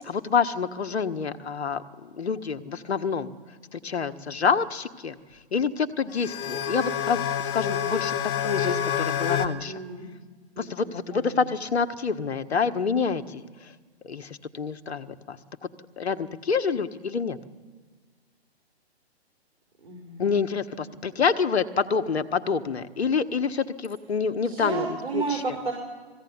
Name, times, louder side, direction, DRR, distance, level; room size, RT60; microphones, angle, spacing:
voice 1, 0.0-3.3 3.7-5.2 5.5-8.2 8.4-9.8 10.6-13.7 14.0-15.4 16.0-17.4 20.2-25.6, left 5 dB, 75° left, 11 dB, 1.5 m, -27 dB
sound 1, 6.1-9.5, left 9 dB, 25° left, 1.5 m, -27 dB
voice 2, 9.7-10.2 10.6-11.2 19.8-20.2 24.4-25.7, right 4 dB, 65° right, -1 dB, 5.1 m, -32 dB
21.0 x 16.0 x 9.6 m, 1.4 s
hypercardioid pair, 140°, 33 cm